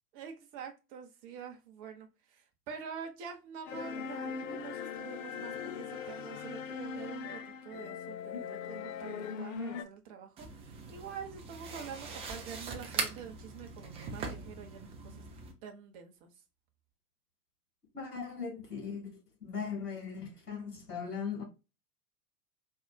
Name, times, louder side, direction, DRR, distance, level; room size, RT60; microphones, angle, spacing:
voice 1, 0.1-15.3 15.6-16.4, right 7 dB, 40° right, 0.8 m, -46 dB
sound 1, 3.7-9.8, left 7 dB, 55° left, 0.5 m, -40 dB
sound 2, 10.4-15.5, right 4 dB, 15° right, 0.4 m, -41 dB
voice 2, 17.9-19.1 19.4-21.4, left 6 dB, 80° left, 1.7 m, -39 dB
4.5 x 2.3 x 2.2 m
figure-of-eight pair, 90°, 46 cm